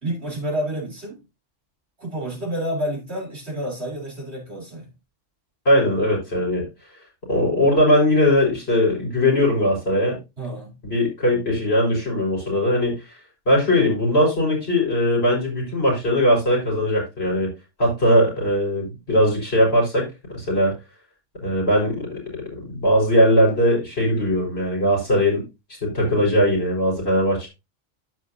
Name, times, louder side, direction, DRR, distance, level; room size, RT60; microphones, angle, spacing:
voice 1, 0.0-1.2 2.0-4.9 10.4-10.8, equal, 55° right, 3.9 m, -29 dB
voice 2, 5.6-6.6 7.3-10.2 10.8-13.0 13.5-17.5 17.8-20.1 20.3-20.7 21.4-25.4 25.8-27.5, left 1 dB, 50° left, 4.6 m, -20 dB
13.5 x 4.8 x 2.7 m
omnidirectional pair, 1.3 m